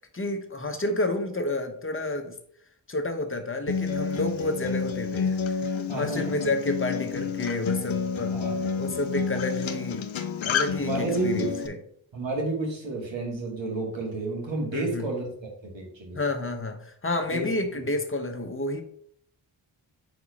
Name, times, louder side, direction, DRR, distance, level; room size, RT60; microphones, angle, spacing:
voice 1, 0.0-2.4 2.9-8.4 8.8-10.1 10.4-11.8 14.7-15.1 16.1-18.8, left 2 dB, 25° left, 6 dB, 1.0 m, -30 dB
Acoustic guitar, 3.7-11.7, left 6 dB, 80° left, 0.7 m, -29 dB
voice 2, 5.9-6.4 8.3-8.6 10.8-11.7 12.1-15.3 15.7-16.2 17.3-17.9, right 2 dB, 70° right, -1 dB, 2.3 m, -31 dB
4.7 x 4.2 x 5.0 m, 0.65 s
cardioid pair, 55°, 47 cm